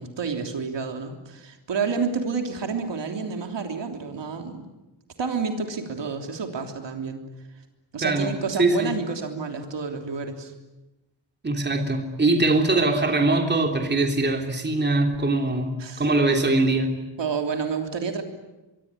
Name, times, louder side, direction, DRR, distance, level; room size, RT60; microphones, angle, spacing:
voice 1, 0.0-4.6 5.2-7.2 7.9-10.5 15.8-16.0 17.2-18.2, right 5 dB, 70° right, 4 dB, 3.4 m, -29 dB
voice 2, 8.0-8.3 8.6-8.9 11.4-16.9, right 2 dB, 25° right, 3 dB, 3.3 m, -22 dB
24.0 x 24.0 x 9.8 m, 1.0 s
wide cardioid pair, 150°, 44 cm